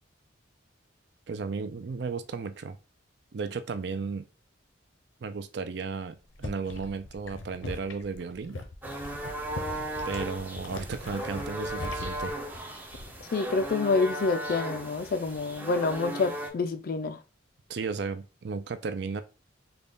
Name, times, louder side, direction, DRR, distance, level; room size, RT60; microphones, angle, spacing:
voice 1, 1.3-2.8 3.3-4.3 5.2-8.6 9.8-12.3 17.7-19.2, right 4 dB, 60° right, 0.4 m, -34 dB
sound 1, 6.2-13.3 13.6-14.0, left 2 dB, 85° left, 0.7 m, -41 dB
sound 2, 8.8-16.5, right 1 dB, 10° right, 0.5 m, -36 dB
voice 2, 13.3-17.2, left 4 dB, 45° left, 0.3 m, -27 dB
3.9 x 2.3 x 3.5 m
head